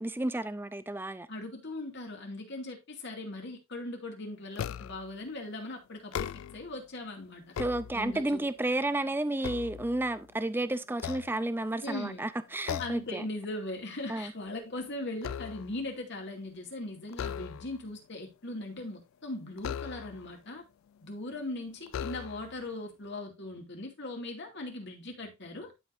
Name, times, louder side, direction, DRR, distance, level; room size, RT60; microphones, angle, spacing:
voice 1, 0.0-1.3 7.6-13.3 14.1-14.3, right 1 dB, 10° right, 0.4 m, -32 dB
voice 2, 1.3-7.4 7.9-8.5 11.8-12.2 12.8-20.6 21.0-25.7, left 2 dB, 60° left, 2.4 m, -39 dB
sound 1, 4.6-5.1 6.0-6.8 7.3-8.4 8.9-10.4 10.9-11.9 12.7-13.2 13.5-13.8 14.2-15.9 17.1-17.9 19.6-20.4 21.1-21.2 21.9-22.6, left 8 dB, 75° left, 0.3 m, -39 dB
12.5 x 5.1 x 2.6 m
head